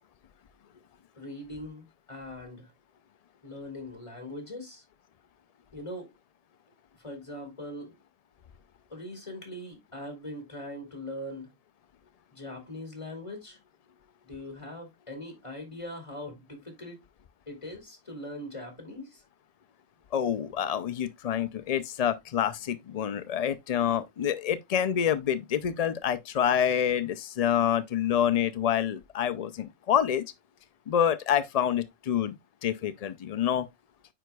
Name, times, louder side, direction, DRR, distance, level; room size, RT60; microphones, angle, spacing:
voice 1, 1.1-2.7 3.4-4.8 5.7-6.1 7.0-8.0 8.9-11.5 12.3-13.6 14.2-17.0 17.5-19.2, left 1 dB, 25° left, 2.4 m, -41 dB
voice 2, 20.1-30.2 30.9-32.3 32.6-33.7, left 9 dB, 85° left, 0.3 m, -27 dB
9.1 x 4.9 x 2.3 m
omnidirectional pair, 1.3 m